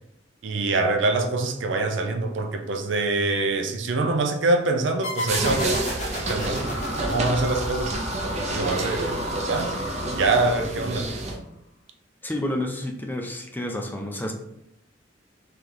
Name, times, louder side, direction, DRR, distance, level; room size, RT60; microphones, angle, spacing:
voice 1, 0.4-5.8 6.3-6.8 7.1-8.0 8.5-9.2 9.4-9.8 10.1-11.1, right 2 dB, 80° right, 5 dB, 0.5 m, -24 dB
sound 1, 5.0-8.3, left 1 dB, 40° left, 1.0 m, -32 dB
sound 2, 5.3-11.4, right 2 dB, 40° right, 0.6 m, -29 dB
sound 3, 6.1-11.1, left 1 dB, 85° left, 0.8 m, -35 dB
voice 2, 12.2-14.3, left 1 dB, 10° left, 3 dB, 0.5 m, -30 dB
3.3 x 2.9 x 3.8 m, 0.78 s
head